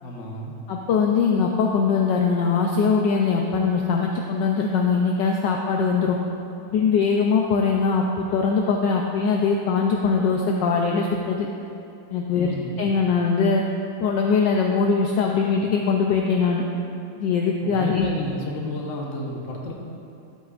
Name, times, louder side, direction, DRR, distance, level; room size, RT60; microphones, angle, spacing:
voice 1, 0.0-0.6 12.3-12.9 17.6-19.7, left 1 dB, 45° left, -1 dB, 1.1 m, -32 dB
voice 2, 0.7-6.2 6.7-11.5 12.1-13.6 14.0-16.6 17.2-18.1, left 5 dB, 75° left, 0 dB, 1.1 m, -21 dB
12.0 x 8.2 x 2.4 m, 2.7 s
omnidirectional pair, 2.2 m